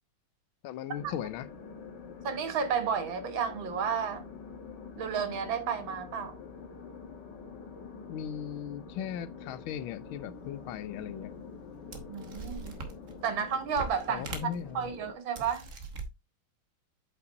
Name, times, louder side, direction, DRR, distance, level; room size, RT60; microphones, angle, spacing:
voice 1, 0.6-1.5 8.1-11.3 14.1-14.9, left 9 dB, 75° left, 1.3 m, -38 dB
sound 1, 0.9-15.1, left 5 dB, 60° left, 1.7 m, -46 dB
voice 2, 2.2-4.2 5.0-6.4 12.1-12.8 13.2-14.4 14.7-15.7, right 7 dB, 65° right, 1.9 m, -32 dB
sound 2, 10.8-10.9 11.6-11.7 11.9-13.3 13.7-14.9 15.3-16.1, right 4 dB, 45° right, 1.2 m, -41 dB
8.1 x 5.5 x 2.6 m
omnidirectional pair, 2.4 m